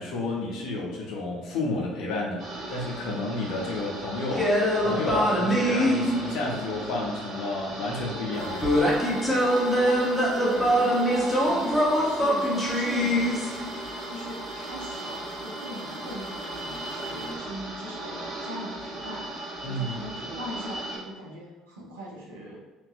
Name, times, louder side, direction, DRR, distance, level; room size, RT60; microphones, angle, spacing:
voice 1, 0.0-2.4 2.7-4.5 4.8-8.8 19.6-20.0, left 2 dB, 55° left, -2 dB, 0.6 m, -31 dB
sound 1, 2.4-21.0, right 2 dB, 55° right, 1.2 m, -37 dB
sound 2, 4.3-6.7 8.6-13.9, equal, 10° left, 0.6 m, -24 dB
sound 3, 8.3-17.3, left 2 dB, 5° right, 1.4 m, -46 dB
voice 2, 10.3-13.4 14.1-22.6, equal, 75° right, -4 dB, 0.6 m, -39 dB
2.6 x 2.3 x 2.3 m, 1.1 s
figure-of-eight pair, 55°, 0 cm